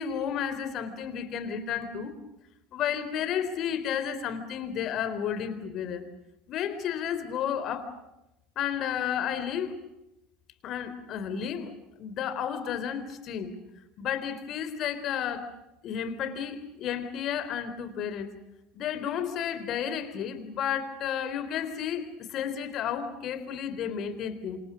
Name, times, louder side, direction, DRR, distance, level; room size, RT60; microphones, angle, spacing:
voice 1, 0.0-2.1 2.7-6.0 6.5-7.9 8.6-9.8 10.6-11.7 12.0-13.5 14.0-15.5 15.8-18.4 18.7-24.6, left 8 dB, 50° left, 11 dB, 4.1 m, -32 dB
28.0 x 26.5 x 6.3 m, 0.90 s
hypercardioid pair, 80°, 0 cm